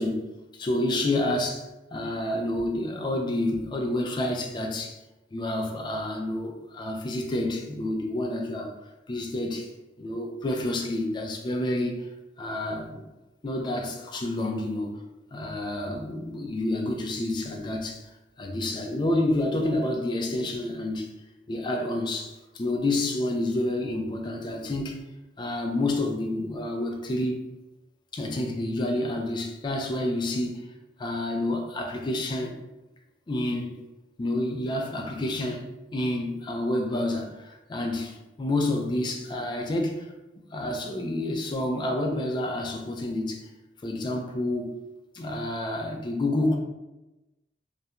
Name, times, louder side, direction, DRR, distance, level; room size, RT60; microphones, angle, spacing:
voice 1, 0.0-5.0 5.3-8.8 9.1-9.7 10.0-12.1 12.4-13.0 13.4-14.9 15.3-21.1 21.5-25.0 25.4-27.4 28.1-30.7 31.0-32.6 33.3-33.8 34.2-40.1 40.5-43.5 43.8-44.8 45.1-46.6, left 1 dB, 25° left, 2 dB, 0.3 m, -29 dB
2.4 x 2.1 x 2.8 m, 1.0 s
head